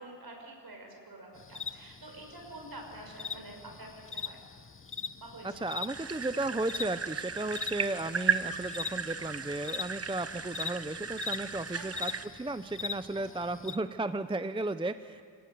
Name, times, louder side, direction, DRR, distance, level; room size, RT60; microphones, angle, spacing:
voice 1, 0.0-4.4 5.2-5.6 11.7-12.1, right 1 dB, 55° right, 2 dB, 5.9 m, -47 dB
sound 1, 1.4-13.8, left 5 dB, 30° left, 0.7 m, -42 dB
voice 2, 5.4-15.2, right 2 dB, 10° right, 11 dB, 0.5 m, -34 dB
sound 2, 5.9-12.3, right 5 dB, 35° right, 0.9 m, -36 dB
29.0 x 18.0 x 7.9 m, 2.2 s
wide cardioid pair, 110°, 43 cm